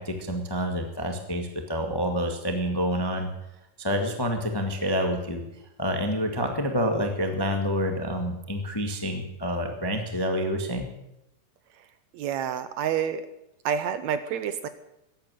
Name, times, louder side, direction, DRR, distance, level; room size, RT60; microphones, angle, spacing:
voice 1, 0.0-3.3 3.8-5.4 5.8-10.9, equal, 15° left, 5 dB, 0.8 m, -28 dB
voice 2, 12.1-13.2 13.7-14.7, right 8 dB, 75° right, 12 dB, 1.8 m, -28 dB
15.0 x 10.5 x 9.2 m, 0.86 s
omnidirectional pair, 3.6 m